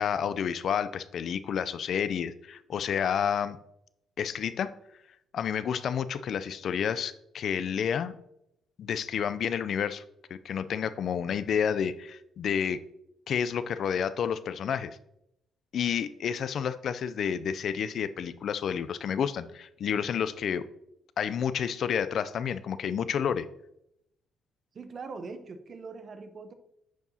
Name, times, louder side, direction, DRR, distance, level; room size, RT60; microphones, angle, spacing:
voice 1, 0.0-3.6 4.2-4.7 5.3-8.1 8.8-10.0 10.4-12.8 13.3-15.0 15.7-20.7 21.2-23.5, left 8 dB, 65° left, 14 dB, 0.4 m, -30 dB
voice 2, 24.7-26.5, right 4 dB, 45° right, 9 dB, 0.7 m, -41 dB
10.0 x 4.7 x 2.7 m, 0.79 s
cardioid pair, 90°, 0 cm